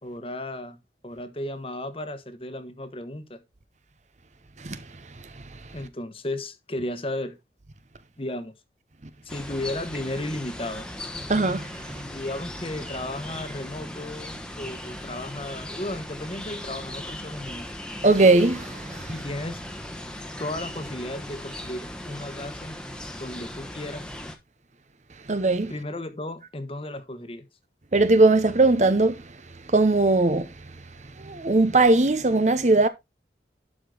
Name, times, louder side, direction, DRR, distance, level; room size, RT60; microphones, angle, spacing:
voice 1, 0.0-0.8 1.0-3.4 5.7-7.4 8.2-8.5 9.2-10.9 11.9-17.7 19.1-19.6 20.4-22.8 23.1-24.1 25.7-27.4, left 1 dB, 30° left, 1.2 m, -34 dB
sound 1, 9.3-24.4, left 1 dB, 5° left, 1.1 m, -38 dB
voice 2, 11.3-11.7 18.0-19.0 25.3-25.7 27.9-29.2 29.7-30.5 31.2-32.9, right 2 dB, 40° right, 0.8 m, -19 dB
11.5 x 5.0 x 3.8 m
head